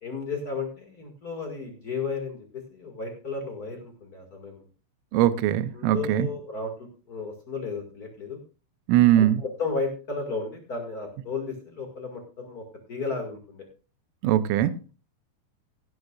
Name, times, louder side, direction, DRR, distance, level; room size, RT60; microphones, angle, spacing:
voice 1, 0.0-4.6 5.7-8.4 9.1-13.6, left 4 dB, 85° left, 0.8 m, -34 dB
voice 2, 5.1-6.3 8.9-9.4 14.2-14.7, right 12 dB, 85° right, 3.4 m, -21 dB
17.0 x 11.0 x 2.4 m
omnidirectional pair, 5.6 m